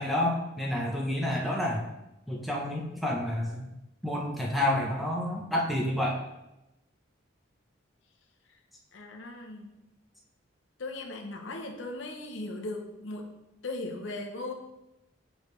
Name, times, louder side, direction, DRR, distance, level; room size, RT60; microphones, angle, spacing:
voice 1, 0.0-1.8 2.3-3.7 4.0-6.2, left 1 dB, ahead, -3 dB, 0.8 m, -29 dB
voice 2, 8.9-9.7 10.8-13.3 13.6-14.5, left 2 dB, 75° left, 2 dB, 0.9 m, -38 dB
6.3 x 5.0 x 3.2 m, 0.93 s
head